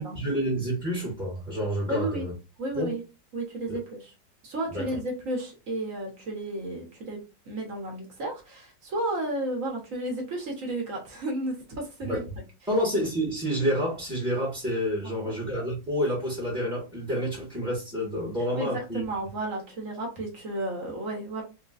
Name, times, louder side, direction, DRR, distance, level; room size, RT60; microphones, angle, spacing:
voice 1, 0.0-2.3 2.7-2.9 3.7-3.8 4.7-4.9 12.0-12.2 12.7-19.0, equal, 5° right, -7 dB, 1.3 m, -29 dB
voice 2, 1.9-2.3 2.6-3.0 3.3-4.1 4.4-7.2 7.4-12.2 15.2-15.3 18.5-21.4, right 1 dB, 50° right, 1 dB, 1.4 m, -32 dB
3.8 x 2.9 x 2.4 m, 0.28 s
omnidirectional pair, 2.0 m